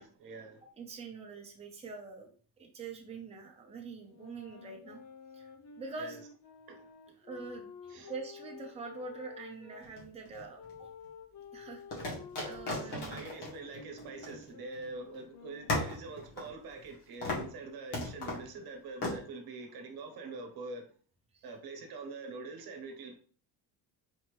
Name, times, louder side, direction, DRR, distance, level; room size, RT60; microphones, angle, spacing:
voice 1, 0.0-0.6 6.0-6.2 6.7-7.1 7.9-8.1 12.8-20.9 21.4-23.2, right 3 dB, 55° right, 1.0 m, -45 dB
voice 2, 0.8-5.0 5.3-5.5 5.8-6.2 7.2-10.9 11.5-12.2 12.4-13.2 21.3-21.4, right 4 dB, 15° right, 0.7 m, -45 dB
sound 1, 4.0-9.9 10.6-16.0, left 5 dB, 40° left, 0.7 m, -51 dB
sound 2, 9.8-10.7 11.9-14.9 15.1-15.2 15.7-16.9 17.2-17.5 17.9-18.5 19.0-19.2, left 2 dB, 65° left, 1.9 m, -37 dB
4.3 x 2.8 x 3.2 m
cardioid pair, 130°, 43 cm